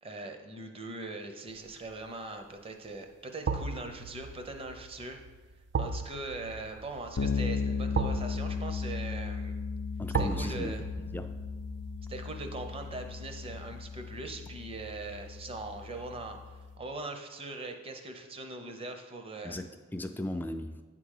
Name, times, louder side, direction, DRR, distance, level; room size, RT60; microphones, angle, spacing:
voice 1, 0.0-5.2 5.7-9.6 10.2-10.8 12.1-16.4 16.8-19.6, right 2 dB, 30° right, 5 dB, 0.7 m, -41 dB
sound 1, 1.7-2.0 3.5-14.5 14.8-14.9, right 4 dB, 55° right, 0.4 m, -38 dB
Bass guitar, 7.2-16.8, left 5 dB, 90° left, 0.5 m, -36 dB
voice 2, 10.0-11.4 19.4-20.8, left 1 dB, 10° left, 7 dB, 0.3 m, -37 dB
9.2 x 3.7 x 6.5 m, 1.2 s
head